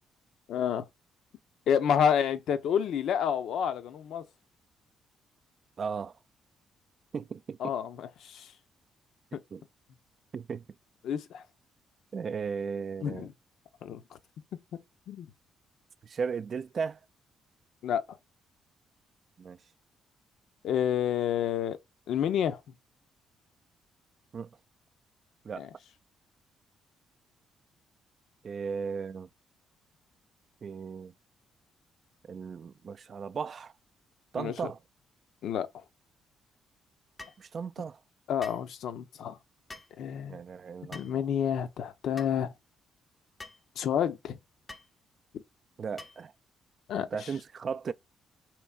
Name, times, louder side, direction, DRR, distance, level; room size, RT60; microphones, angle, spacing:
voice 1, 0.5-0.9 1.7-4.2 7.6-8.5 9.3-9.4 11.0-11.4 13.0-13.3 13.8-14.0 14.5-14.6 15.1-15.3 17.8-18.0 20.6-21.8 22.1-22.6 25.6-25.7 34.4-34.7 35.4-35.7 38.3-39.4 40.0-40.4 40.9-42.5 43.8-44.4 46.9-47.3, left 8 dB, 75° left, 0.5 m, -29 dB
voice 2, 5.8-6.1 7.1-7.7 9.5-9.6 10.3-10.6 12.1-13.3 16.0-17.0 19.4-19.6 24.3-24.5 25.4-25.7 28.4-29.3 30.6-31.1 32.3-33.7 34.3-34.8 37.4-38.0 40.3-41.2 45.8-46.3 47.1-47.9, right 6 dB, 45° right, 0.3 m, -36 dB
sound 1, 37.2-37.4 38.4-38.7 39.7-39.9 40.9-41.2 42.2-42.3 43.4-43.6 44.7-44.9 46.0-46.3, left 2 dB, 15° left, 0.6 m, -46 dB
4.5 x 3.1 x 2.2 m
cardioid pair, 90°, 0 cm